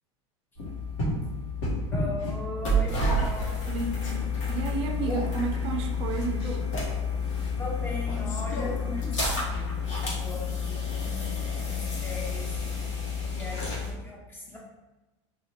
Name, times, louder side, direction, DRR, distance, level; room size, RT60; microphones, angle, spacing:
sound 1, 0.6-13.9, left 2 dB, 80° left, 1.2 m, -30 dB
voice 1, 1.9-3.6 7.6-12.5 13.2-14.6, left 2 dB, 15° left, -2 dB, 0.6 m, -38 dB
Male speech man speaking, 3.0-3.3 4.0-4.3 5.0-5.4 6.4-6.7 8.0-8.8, left 3 dB, 55° left, 0.6 m, -38 dB
voice 2, 3.7-4.0 4.5-6.6, right 5 dB, 35° right, 3 dB, 0.4 m, -32 dB
2.7 x 2.5 x 3.1 m, 1.1 s
supercardioid pair, 135°, 16 cm